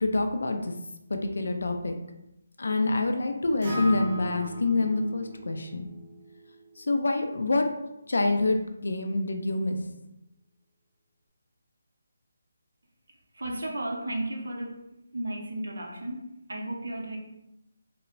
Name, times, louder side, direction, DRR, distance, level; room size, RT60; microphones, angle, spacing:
voice 1, 0.0-0.7 1.1-2.0 2.6-5.9 6.9-7.7 8.1-9.8, left 2 dB, 70° left, 5 dB, 0.3 m, -26 dB
Acoustic guitar, 3.6-7.8, equal, 25° right, 0.5 m, -39 dB
voice 2, 13.3-14.8 15.1-17.2, right 1 dB, 85° right, 1 dB, 0.6 m, -34 dB
2.9 x 2.0 x 2.5 m, 0.89 s
hypercardioid pair, 175°, 0 cm